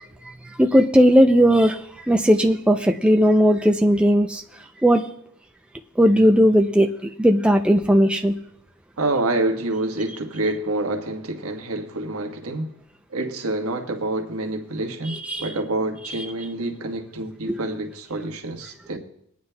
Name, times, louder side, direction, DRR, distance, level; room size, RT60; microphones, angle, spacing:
voice 1, 0.6-1.8 2.1-4.4 4.8-5.0 6.0-6.9 7.2-8.3 15.0-15.5 17.5-17.6, equal, 5° right, 0.4 m, -17 dB
voice 2, 9.0-12.7 13.1-19.0, right 2 dB, 70° right, 1.3 m, -27 dB
22.5 x 9.5 x 2.2 m
head